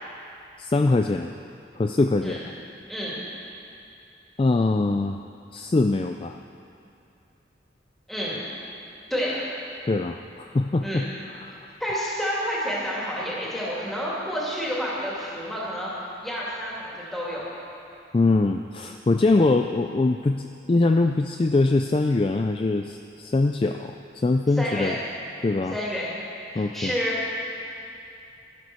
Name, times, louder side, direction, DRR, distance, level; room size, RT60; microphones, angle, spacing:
voice 1, 0.6-1.3 1.8-2.4 4.4-5.2 5.5-6.4 9.9-11.1 11.4-11.8 18.1-24.9 25.4-25.7 26.5-26.9, left 2 dB, 30° left, 5 dB, 0.3 m, -23 dB
voice 2, 8.1-8.4 9.1-9.4 10.8-11.1 11.8-15.9 16.2-17.4 24.6-25.0 25.7-26.1 26.5-27.2, equal, ahead, -7 dB, 2.7 m, -29 dB
13.0 x 10.5 x 6.3 m, 2.7 s
head